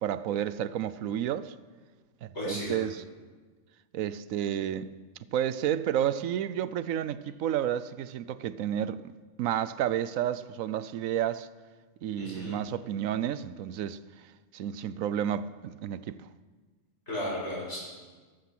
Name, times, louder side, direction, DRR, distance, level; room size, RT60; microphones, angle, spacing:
voice 1, 0.0-1.5 2.2-3.0 3.9-4.9 5.3-9.1 9.4-11.5 12.0-14.0 14.5-16.2, right 10 dB, 75° right, 1.0 m, -31 dB
voice 2, 2.3-2.8 12.2-12.6 17.1-17.8, left 1 dB, 50° left, 7.0 m, -34 dB
14.0 x 13.5 x 6.1 m
omnidirectional pair, 1.5 m